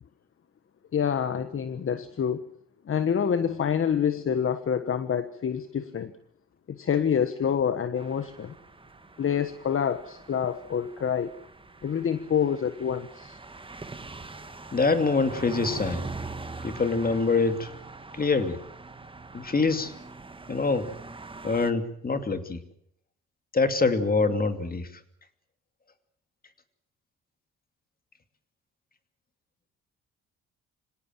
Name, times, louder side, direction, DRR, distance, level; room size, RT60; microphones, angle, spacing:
voice 1, 0.9-2.4 2.8-6.1 6.7-8.5 9.2-11.3 11.8-13.4, left 8 dB, 45° left, 12 dB, 1.4 m, -27 dB
sound 1, 8.0-21.7, right 3 dB, 15° right, 1.7 m, -42 dB
voice 2, 14.7-16.1 16.6-17.7 18.1-18.6 19.3-19.9 20.5-20.9 21.4-22.6 23.5-24.9, left 4 dB, 30° left, 9 dB, 2.7 m, -25 dB
26.0 x 17.5 x 7.6 m, 0.71 s
cardioid pair, 90°, 30 cm